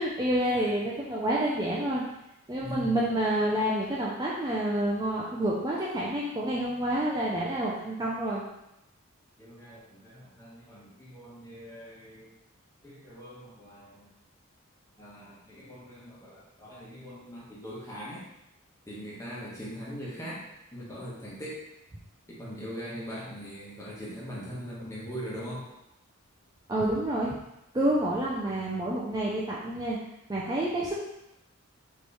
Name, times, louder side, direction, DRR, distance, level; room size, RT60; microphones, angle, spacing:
voice 1, 0.0-2.0 2.5-8.4 26.7-27.4 27.7-30.0 30.3-31.0, right 1 dB, 15° right, -5 dB, 0.4 m, -28 dB
voice 2, 2.6-3.0 9.4-12.3 12.8-14.1 15.0-18.3 18.9-20.4 20.7-21.6 22.3-25.7, equal, 15° left, -7 dB, 1.2 m, -41 dB
4.3 x 3.0 x 3.4 m, 0.87 s
head